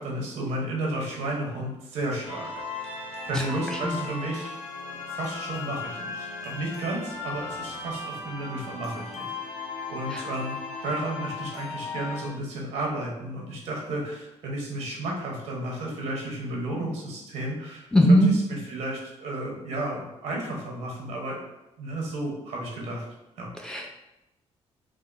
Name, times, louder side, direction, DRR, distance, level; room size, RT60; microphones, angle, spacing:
voice 1, 0.0-2.5 2.8-4.5 4.9-9.3 9.9-21.4 21.8-23.0 23.4-23.5, right 1 dB, 90° right, -2 dB, 0.8 m, -33 dB
sound 1, 2.2-12.3, left 4 dB, 85° left, 0.6 m, -36 dB
voice 2, 3.7-4.1 10.1-10.2 17.9-18.3 23.6-23.9, equal, 5° left, 0 dB, 0.3 m, -20 dB
3.5 x 2.0 x 2.4 m, 0.93 s
cardioid pair, 120°, 11 cm